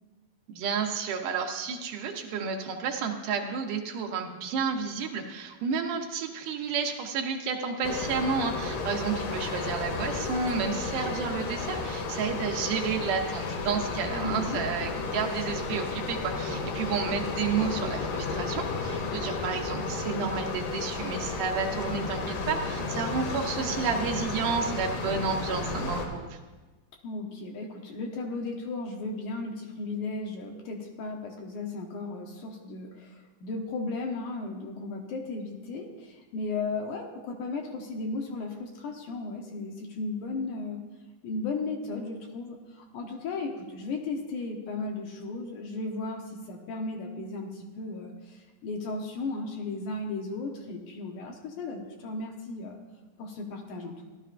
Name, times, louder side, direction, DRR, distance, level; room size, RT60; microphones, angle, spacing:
voice 1, 0.5-26.4, right 5 dB, 75° right, 3 dB, 2.2 m, -31 dB
sound 1, 7.8-26.1, left 4 dB, 90° left, 3.1 m, -33 dB
voice 2, 14.1-14.7 27.0-40.8 41.2-52.8 53.2-54.1, left 3 dB, 70° left, 1 dB, 2.1 m, -35 dB
16.0 x 12.0 x 2.5 m, 1.2 s
omnidirectional pair, 4.3 m